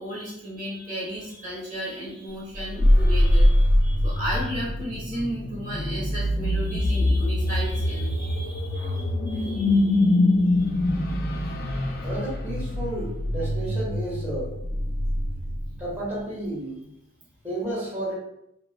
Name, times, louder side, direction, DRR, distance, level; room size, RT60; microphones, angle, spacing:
voice 1, 0.0-10.7 11.1-12.0, equal, 40° right, -7 dB, 0.9 m, -35 dB
sound 1, 2.5-16.0, left 1 dB, 50° left, 0.4 m, -23 dB
voice 2, 12.0-14.5 15.8-16.9 17.4-18.1, right 1 dB, 10° right, -8 dB, 0.9 m, -32 dB
3.0 x 2.1 x 2.2 m, 0.79 s
head